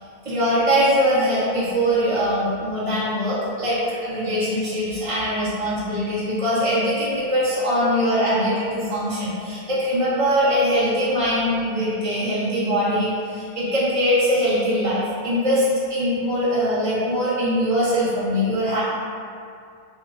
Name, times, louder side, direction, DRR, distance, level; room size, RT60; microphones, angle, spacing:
voice 1, 0.2-18.8, equal, 35° right, -10 dB, 1.1 m, -22 dB
4.2 x 2.1 x 3.6 m, 2.3 s
omnidirectional pair, 1.1 m